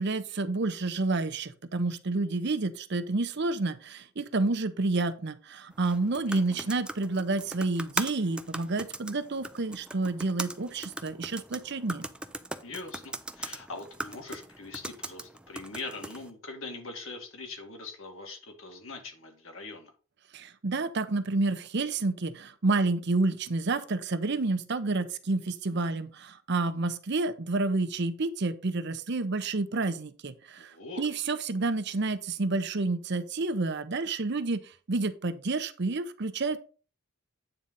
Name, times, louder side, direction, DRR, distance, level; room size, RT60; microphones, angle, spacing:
voice 1, 0.0-12.1 20.3-36.6, right 3 dB, 55° right, 10 dB, 0.7 m, -29 dB
sound 1, 5.7-16.3, right 1 dB, 5° right, 0.4 m, -40 dB
voice 2, 6.3-6.7 12.6-19.9 30.6-31.0, left 3 dB, 65° left, 2 dB, 2.0 m, -42 dB
9.0 x 3.9 x 5.4 m, 0.37 s
head